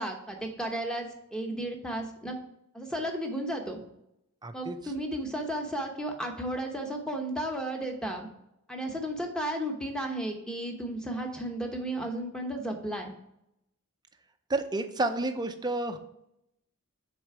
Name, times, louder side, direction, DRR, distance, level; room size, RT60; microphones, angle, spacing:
voice 1, 0.0-2.3 2.7-3.8 4.5-8.3 8.7-13.1, right 1 dB, 5° left, 2 dB, 0.9 m, -34 dB
voice 2, 4.4-4.8 14.5-16.0, right 2 dB, 20° right, 7 dB, 0.5 m, -30 dB
6.2 x 4.2 x 4.8 m, 0.81 s
head